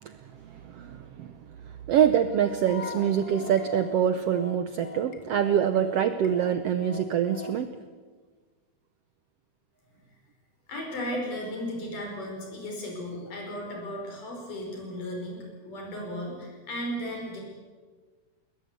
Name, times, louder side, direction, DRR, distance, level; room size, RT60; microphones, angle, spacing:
voice 1, 0.0-1.4 1.9-7.7, right 9 dB, 75° right, 10 dB, 1.4 m, -25 dB
sound 1, 2.6-7.6, left 4 dB, 35° left, 1.8 m, -40 dB
voice 2, 10.7-17.4, equal, 75° left, 1 dB, 6.9 m, -35 dB
21.5 x 20.0 x 8.4 m, 1.5 s
omnidirectional pair, 3.7 m